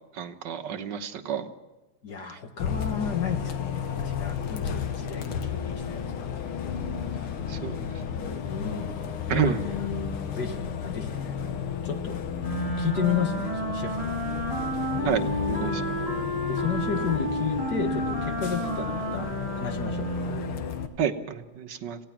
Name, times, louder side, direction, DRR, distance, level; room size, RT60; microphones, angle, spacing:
voice 1, 0.1-1.5 7.5-7.8 9.3-9.6 15.0-15.8 21.0-22.0, right 8 dB, 60° right, 7 dB, 1.6 m, -29 dB
voice 2, 2.0-6.3 8.5-9.0 9.3-11.5 11.8-12.2 12.8-14.2 16.5-19.3 19.6-20.1, left 7 dB, 50° left, 5 dB, 2.1 m, -32 dB
Bus, 2.6-20.9, left 7 dB, 80° left, 2.1 m, -33 dB
Wind instrument woodwind instrument, 12.4-20.6, right 1 dB, 25° left, 4.7 m, -31 dB
27.5 x 16.5 x 6.0 m, 1.1 s
omnidirectional pair, 2.4 m